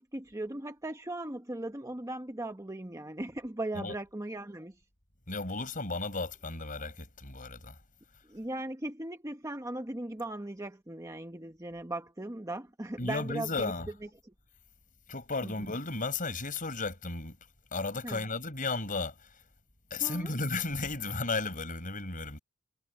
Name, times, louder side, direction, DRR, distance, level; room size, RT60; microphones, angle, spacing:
voice 1, 0.0-4.8 8.3-13.7 14.0-14.3 15.4-15.7 18.0-18.2 20.0-20.3, right 1 dB, 15° right, 1.1 m, -38 dB
voice 2, 5.3-7.8 13.0-13.9 15.1-17.4 17.7-19.3 19.9-22.4, left 3 dB, 40° left, 5.9 m, -34 dB
head